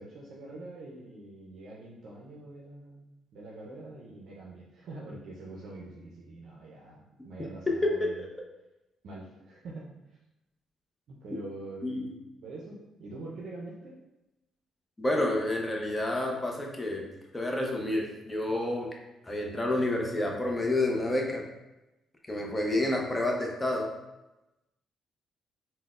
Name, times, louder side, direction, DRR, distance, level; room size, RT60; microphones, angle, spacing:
voice 1, 0.0-8.3 9.0-9.9 11.1-12.1 12.4-14.0 22.4-22.6, right 2 dB, 70° right, -4 dB, 0.5 m, -45 dB
voice 2, 7.7-8.2 11.8-12.1 15.0-19.0 19.2-21.4 22.2-24.0, left 1 dB, 15° left, 0 dB, 0.6 m, -29 dB
3.8 x 2.0 x 2.4 m, 0.96 s
cardioid pair, 90°, 0 cm